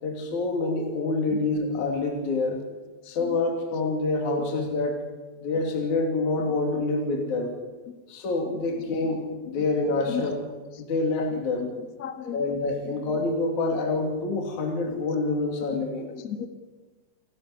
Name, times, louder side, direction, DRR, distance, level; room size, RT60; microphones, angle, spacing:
voice 1, 0.0-2.6 3.1-5.0 5.4-7.5 8.1-10.4 10.8-11.6 12.3-16.1, left 3 dB, 55° left, 2 dB, 4.0 m, -27 dB
voice 2, 3.0-3.4 10.0-10.2 11.6-11.7 12.0-12.4 12.9-13.0 16.1-16.5, left 10 dB, 35° left, 6 dB, 1.6 m, -34 dB
29.5 x 12.0 x 9.6 m, 1.3 s
omnidirectional pair, 4.1 m